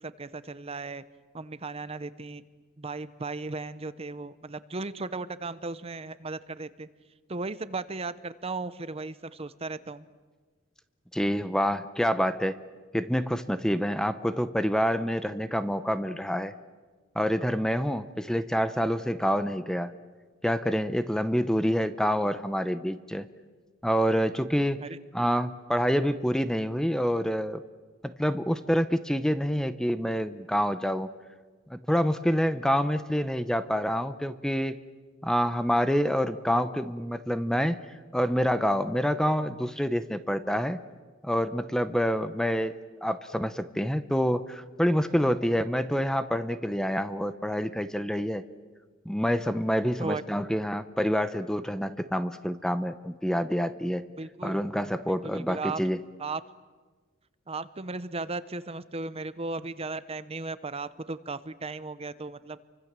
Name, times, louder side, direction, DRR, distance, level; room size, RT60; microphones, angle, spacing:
voice 1, 0.0-1.0 1.3-2.4 2.8-6.9 7.3-10.1 24.8-25.0 50.0-50.2 54.2-54.6 55.1-55.8 56.2-56.4 57.5-62.6, right 3 dB, 30° right, 14 dB, 0.8 m, -36 dB
voice 2, 11.1-12.6 12.9-16.5 17.2-19.9 20.4-23.3 23.8-24.8 25.1-27.6 28.0-31.1 31.7-34.8 35.2-37.8 38.1-40.8 41.2-42.7 43.0-48.4 49.1-54.0 54.4-56.0, equal, 5° left, 12 dB, 0.7 m, -27 dB
29.5 x 24.5 x 7.4 m, 1.4 s
head